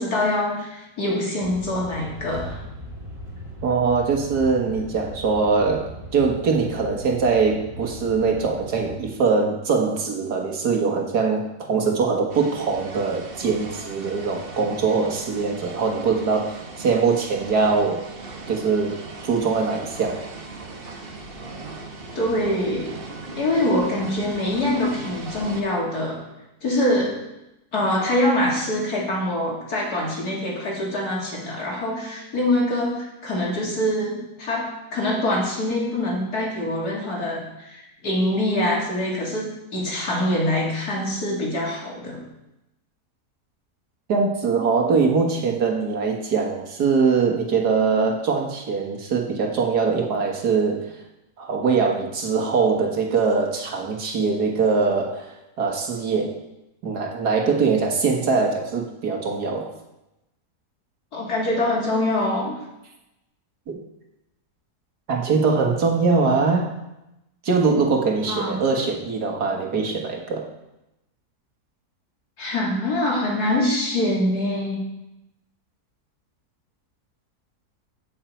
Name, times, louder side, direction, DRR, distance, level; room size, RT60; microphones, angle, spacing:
voice 1, 0.0-2.6 22.1-22.9 23.4-26.2 26.6-27.2 27.7-42.2 61.1-62.5 68.3-68.6 72.4-74.8, left 1 dB, 75° left, -3 dB, 3.1 m, -24 dB
sound 1, 1.4-9.0, equal, 20° right, 2.7 m, -38 dB
voice 2, 3.6-18.0 18.5-20.2 44.1-50.9 51.4-56.4 56.8-59.7 63.7-63.8 65.1-66.7 67.4-70.5, right 4 dB, 85° right, 1 dB, 2.1 m, -22 dB
sound 2, 12.3-25.6, right 3 dB, 40° right, 1.3 m, -38 dB
16.5 x 6.6 x 4.5 m, 0.91 s
omnidirectional pair, 1.7 m